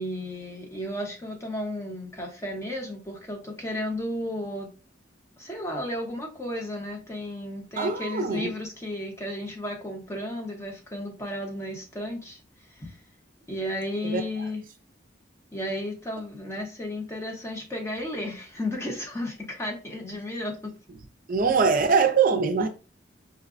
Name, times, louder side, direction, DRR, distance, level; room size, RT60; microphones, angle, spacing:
voice 1, 0.0-4.7 5.4-12.4 12.8-13.0 13.5-14.6 15.5-20.7, left 1 dB, 15° left, 0.9 m, -33 dB
voice 2, 7.8-8.5 14.0-14.2 21.3-22.7, right 5 dB, 45° right, 0.5 m, -22 dB
4.5 x 2.2 x 2.5 m
head